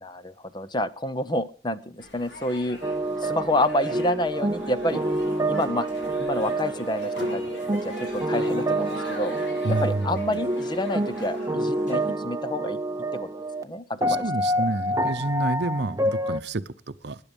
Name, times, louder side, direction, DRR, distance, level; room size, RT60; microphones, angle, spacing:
voice 1, 0.0-2.8 3.2-5.0 5.5-5.9 6.2-7.4 7.8-9.3 9.8-12.8 13.1-13.3 13.6-14.2, left 1 dB, 25° left, 13 dB, 0.8 m, -28 dB
sound 1, 2.0-11.4, left 1 dB, 65° left, 4.7 m, -42 dB
sound 2, 2.8-13.6 14.0-16.4, right 1 dB, 20° right, 0.7 m, -27 dB
sound 3, 4.5-12.2, equal, 45° left, 6.5 m, -46 dB
voice 2, 9.6-10.4 14.1-17.2, right 2 dB, 60° right, 13 dB, 0.8 m, -29 dB
19.5 x 9.9 x 5.3 m, 0.43 s
head